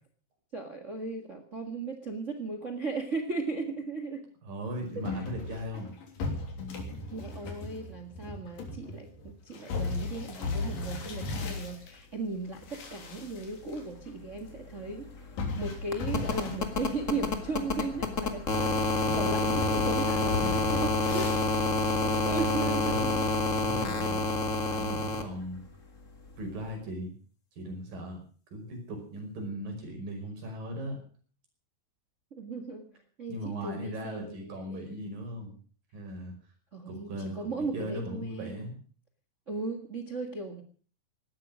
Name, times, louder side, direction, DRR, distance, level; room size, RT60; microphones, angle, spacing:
voice 1, 0.5-4.3 7.1-15.1 15.6-21.3 22.0-23.3 32.3-32.9 33.2-35.0 36.7-38.7 39.5-40.6, right 3 dB, 35° right, 7 dB, 1.2 m, -37 dB
voice 2, 4.4-5.9 22.3-23.2 23.6-24.3 24.7-25.6 26.4-27.1 27.6-28.2 28.5-31.0 33.3-35.5 35.9-36.3 36.9-38.8, equal, 70° right, 3 dB, 7.0 m, -38 dB
sound 1, 5.0-12.0 12.5-13.8 14.1-14.2 15.4-17.6 18.0-18.5 19.0-21.5, left 3 dB, 70° left, 4.7 m, -37 dB
sound 2, 14.0-14.1 14.3-25.2 26.7-26.8, left 3 dB, 30° left, 1.5 m, -29 dB
17.5 x 12.5 x 6.3 m, 0.42 s
omnidirectional pair, 4.1 m